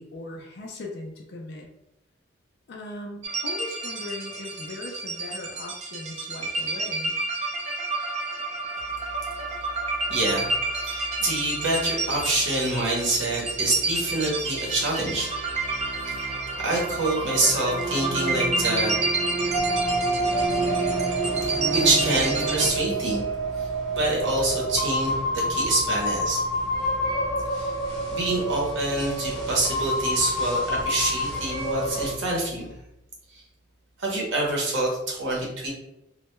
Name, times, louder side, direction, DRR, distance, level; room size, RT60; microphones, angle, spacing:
voice 1, 0.0-1.7 2.7-7.2, left 2 dB, 55° left, 0 dB, 0.4 m, -38 dB
sound 1, 3.2-22.7, right 3 dB, 30° right, 0.4 m, -29 dB
voice 2, 10.1-15.4 16.1-18.9 21.4-23.2 23.6-23.7 23.9-26.4 27.5-27.7 28.1-32.7 33.3-33.4 34.0-35.7, right 2 dB, 65° right, -3 dB, 0.8 m, -26 dB
sound 2, 19.5-32.1, right 1 dB, 5° left, 0.7 m, -28 dB
2.2 x 2.1 x 3.0 m, 0.86 s
head